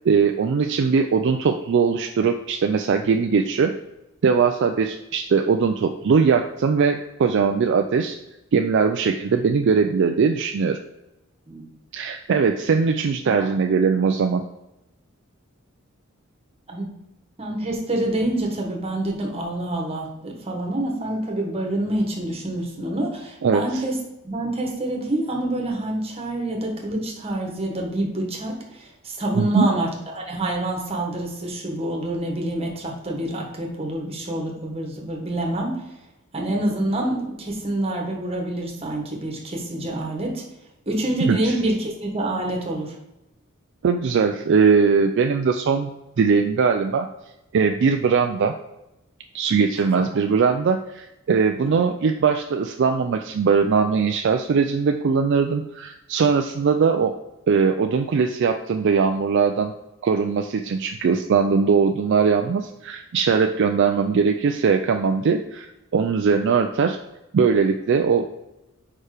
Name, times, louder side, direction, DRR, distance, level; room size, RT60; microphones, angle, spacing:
voice 1, 0.0-3.7 4.2-8.2 8.5-10.8 11.9-14.4 23.4-23.6 29.4-29.7 41.3-41.5 43.8-45.9 46.2-47.1 47.5-48.5 49.3-57.1 57.5-59.7 60.0-67.0 67.3-68.4, right 5 dB, 60° right, 5 dB, 0.4 m, -20 dB
voice 2, 17.4-23.9 24.2-35.8 36.3-40.4 40.9-42.9 49.9-50.0 51.6-51.7, right 1 dB, 30° right, 0 dB, 1.4 m, -27 dB
4.9 x 4.5 x 4.8 m, 0.94 s
head